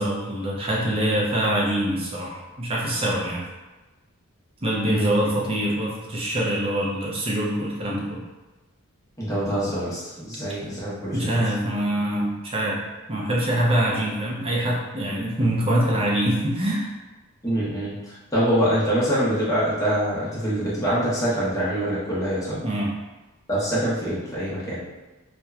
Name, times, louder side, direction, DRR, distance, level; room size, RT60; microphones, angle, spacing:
voice 1, 0.0-3.4 4.6-8.2 11.1-12.8 13.1-16.9 22.6-22.9, right 1 dB, 25° right, -4 dB, 0.5 m, -24 dB
voice 2, 9.2-11.3 17.4-22.6 23.5-24.8, equal, 15° left, -9 dB, 0.7 m, -25 dB
2.8 x 2.1 x 2.3 m, 1.1 s
head